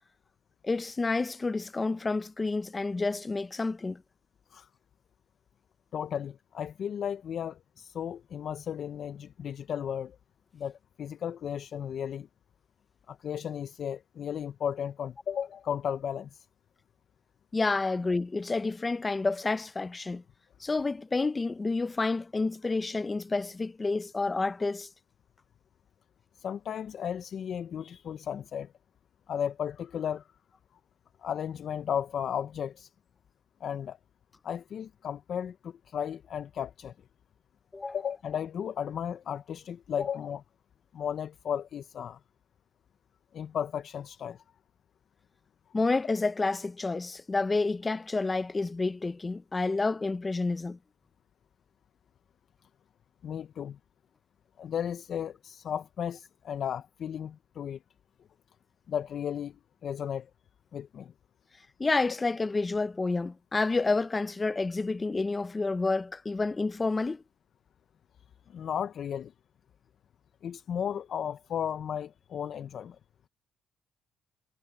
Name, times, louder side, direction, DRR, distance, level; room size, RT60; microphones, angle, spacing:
voice 1, 0.6-4.0 17.5-20.2 20.6-24.9 37.7-38.0 45.7-50.8 61.8-67.2, left 3 dB, 25° left, 0.6 m, -29 dB
voice 2, 5.9-10.2 10.5-12.3 13.1-16.5 26.4-28.7 29.3-30.2 31.2-32.9 33.6-34.0 34.4-36.9 37.9-40.4 40.9-42.2 43.3-44.4 53.2-53.8 54.6-57.8 58.9-59.6 59.8-60.3 60.7-61.1 68.5-69.3 70.4-73.0, left 8 dB, 60° left, 0.7 m, -34 dB
cardioid pair, 90°, 0 cm